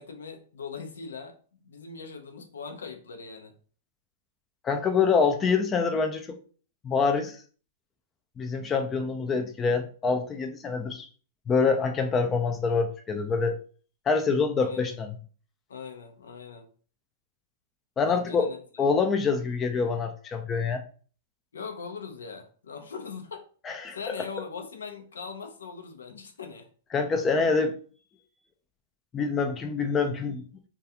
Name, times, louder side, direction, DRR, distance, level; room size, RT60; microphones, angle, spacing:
voice 1, 0.0-1.4 1.6-3.5 14.6-15.0 15.7-16.7 18.1-18.9 21.5-23.5 23.9-26.7, left 5 dB, 90° left, 5 dB, 0.5 m, -40 dB
voice 2, 4.6-6.4 6.8-7.4 8.4-11.1 11.5-13.6 14.1-15.1 18.0-18.5 18.8-20.8 23.7-24.0 26.9-27.7 29.1-30.4, left 5 dB, 20° left, 6 dB, 0.4 m, -25 dB
2.3 x 2.3 x 2.7 m, 0.42 s
hypercardioid pair, 125°, 0 cm